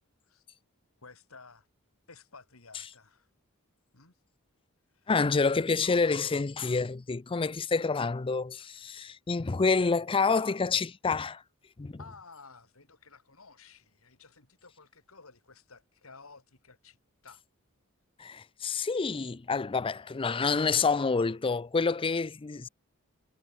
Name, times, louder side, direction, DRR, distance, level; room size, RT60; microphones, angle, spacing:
voice 1, 1.0-1.7 2.1-3.3 3.9-4.2 4.9-5.1 12.0-17.0 17.2-17.4, left 4 dB, 70° left, 3.9 m, -53 dB
voice 2, 5.1-11.4 11.8-12.0 18.2-22.7, left 4 dB, 25° left, 0.5 m, -28 dB
head